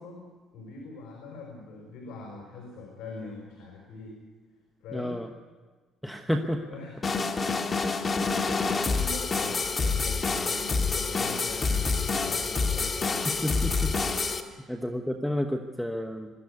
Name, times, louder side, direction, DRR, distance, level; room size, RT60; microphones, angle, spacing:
voice 1, 0.0-4.2 4.8-5.2 6.6-7.0 8.4-13.2 14.5-14.6, left 3 dB, 75° left, 0 dB, 4.9 m, -43 dB
voice 2, 4.9-5.3 6.0-6.6 13.4-13.9 14.7-16.3, equal, ahead, 4 dB, 1.0 m, -30 dB
sound 1, 7.0-14.4, left 4 dB, 30° left, 1.7 m, -27 dB
22.5 x 13.0 x 9.6 m, 1.4 s
cardioid pair, 120°, 0 cm